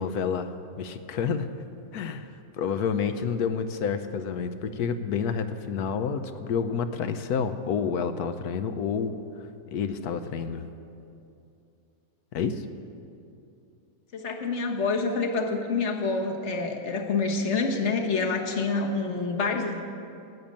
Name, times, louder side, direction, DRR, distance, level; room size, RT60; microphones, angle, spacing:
voice 1, 0.0-1.6 1.9-2.3 2.6-9.2 9.7-10.7 12.3-12.6, left 6 dB, 70° left, 10 dB, 1.2 m, -29 dB
voice 2, 14.1-19.8, left 4 dB, 45° left, 3 dB, 1.5 m, -27 dB
13.0 x 8.8 x 8.6 m, 2.6 s
omnidirectional pair, 1.8 m